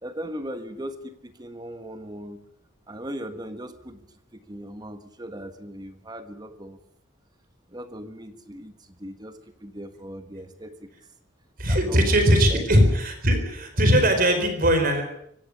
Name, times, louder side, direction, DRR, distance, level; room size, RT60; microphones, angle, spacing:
voice 1, 0.0-2.4 2.9-4.1 4.3-6.8 7.7-10.9 11.7-12.1 12.5-12.7, equal, 20° right, 9 dB, 1.3 m, -38 dB
voice 2, 11.6-15.0, equal, 45° right, 6 dB, 4.5 m, -20 dB
24.0 x 17.0 x 6.7 m, 0.69 s
head